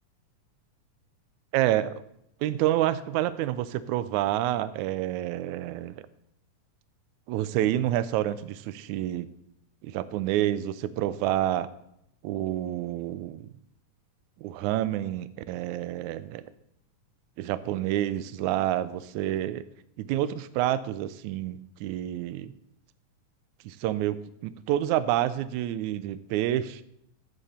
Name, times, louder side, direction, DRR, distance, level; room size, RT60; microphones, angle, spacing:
voice 1, 1.5-2.0 2.4-6.0 7.3-9.3 9.8-11.7 12.2-13.5 14.4-16.4 17.4-19.6 20.0-22.5 23.7-26.8, right 13 dB, 80° right, 14 dB, 1.8 m, -28 dB
12.0 x 8.0 x 4.2 m, 0.75 s
omnidirectional pair, 3.6 m